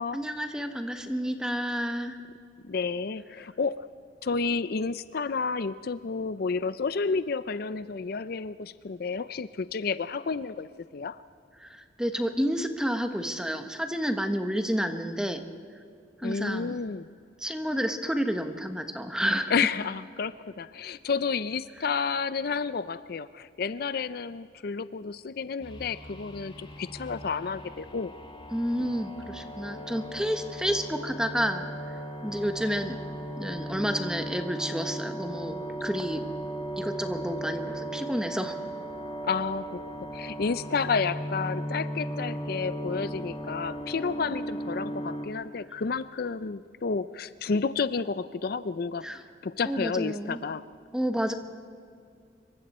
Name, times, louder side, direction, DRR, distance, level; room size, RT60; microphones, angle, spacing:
voice 1, 0.1-2.2 11.6-15.4 16.2-16.8 17.4-19.5 28.5-32.0 32.2-33.0 33.4-36.2 36.8-38.6 49.0-49.2 49.7-50.4 50.9-51.3, equal, 5° right, 6 dB, 1.2 m, -30 dB
voice 2, 2.6-3.9 4.2-11.2 16.2-17.1 19.5-28.1 28.8-28.9 39.2-39.8 40.1-49.0 49.4-50.6, left 5 dB, 60° left, 14 dB, 0.5 m, -31 dB
sound 1, 25.6-45.3, right 1 dB, 25° left, 1.4 m, -37 dB
26.0 x 23.0 x 4.3 m, 2.3 s
head